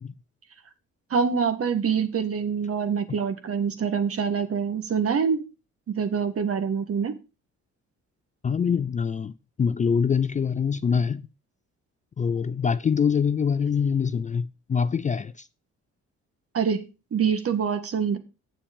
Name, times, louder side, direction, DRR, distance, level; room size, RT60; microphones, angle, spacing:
voice 1, 1.1-5.4 6.0-7.1 16.5-16.8 17.1-18.2, right 6 dB, 50° right, 1.7 m, -25 dB
voice 2, 8.4-9.3 9.6-11.2 12.2-15.5, left 6 dB, 25° left, 0.4 m, -24 dB
8.6 x 7.3 x 5.3 m
cardioid pair, 90°, 30 cm